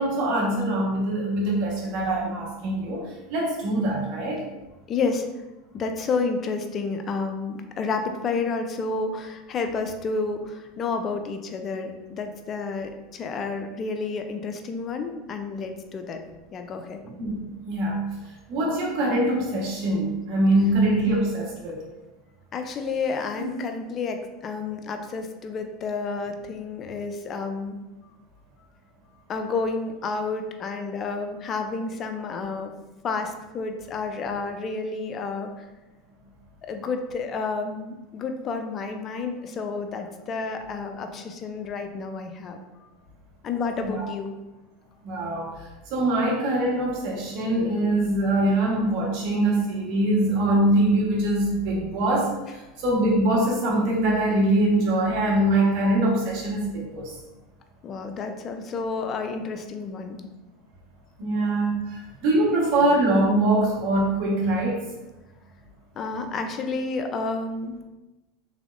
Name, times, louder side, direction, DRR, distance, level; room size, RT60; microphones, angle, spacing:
voice 1, 0.0-4.4 17.0-17.4 17.6-18.0 18.5-21.8 23.4-23.5 43.8-44.1 45.0-45.5 45.9-52.3 52.8-57.1 61.2-64.8, right 1 dB, 60° right, -3 dB, 1.2 m, -23 dB
voice 2, 4.9-5.3 5.7-16.2 16.5-17.0 22.5-27.8 29.3-32.7 33.0-35.5 36.6-42.6 43.4-44.3 57.8-60.2 66.0-67.8, left 4 dB, 40° left, 5 dB, 0.4 m, -30 dB
3.4 x 3.3 x 2.5 m, 1.0 s
hypercardioid pair, 90°, 0 cm